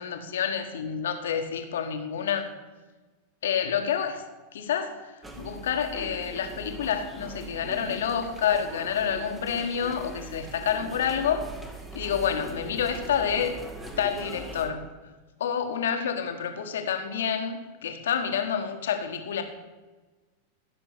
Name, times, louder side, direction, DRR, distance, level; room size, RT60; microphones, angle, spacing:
voice 1, 0.0-2.5 3.4-4.2 4.5-5.0 5.4-11.5 11.9-13.6 14.0-14.9 15.4-19.4, left 8 dB, 60° left, 7 dB, 1.6 m, -28 dB
sound 1, 5.2-14.7, right 2 dB, 10° right, 1.9 m, -41 dB
16.0 x 6.9 x 6.9 m, 1.3 s
figure-of-eight pair, 90°, 0 cm